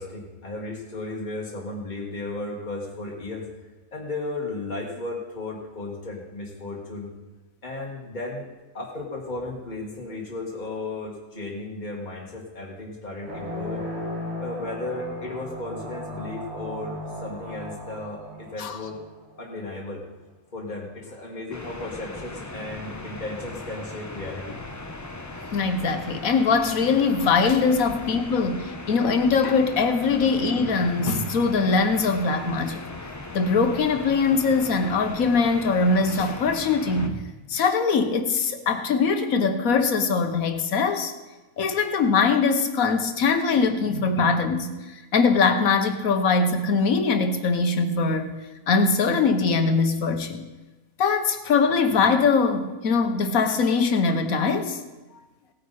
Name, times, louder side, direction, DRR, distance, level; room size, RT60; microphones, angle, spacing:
voice 1, 0.0-3.5 3.9-7.1 7.6-8.5 8.7-13.9 14.4-19.1 19.4-20.0 20.5-24.6, left 2 dB, 30° left, -3 dB, 2.1 m, -35 dB
sound 1, 13.2-19.4, left 1 dB, 60° right, 2.7 m, -36 dB
sound 2, 21.5-37.1, left 2 dB, 15° left, 0.7 m, -38 dB
voice 2, 25.5-32.8 33.3-41.1 41.6-44.7 45.1-48.4 48.7-50.4 51.0-54.8, left 4 dB, 80° left, 7 dB, 1.4 m, -22 dB
17.5 x 9.4 x 4.2 m, 1.1 s
omnidirectional pair, 1.5 m